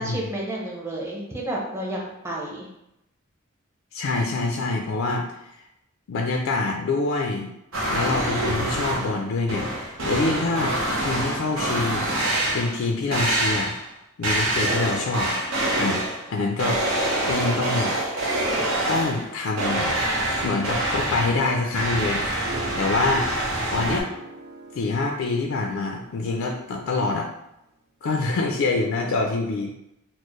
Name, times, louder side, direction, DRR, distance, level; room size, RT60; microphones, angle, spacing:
voice 1, 0.0-2.7, right 1 dB, 15° right, -3 dB, 0.7 m, -31 dB
voice 2, 3.9-5.2 6.1-7.5 7.9-12.1 12.5-13.7 14.2-15.4 15.8-16.0 16.3-16.8 17.3-18.0 18.9-19.9 20.4-22.5 22.8-23.3 23.7-24.1 24.7-27.3 28.0-29.7, left 3 dB, 70° left, 1 dB, 0.4 m, -25 dB
sound 1, 7.7-9.2 9.5-12.8 13.1-13.9 14.2-16.3 16.6-19.3 19.6-24.0, right 1 dB, 70° right, 0.8 m, -26 dB
Harp, 22.1-27.2, right 2 dB, 50° right, 0.3 m, -39 dB
4.2 x 2.0 x 3.0 m, 0.85 s
head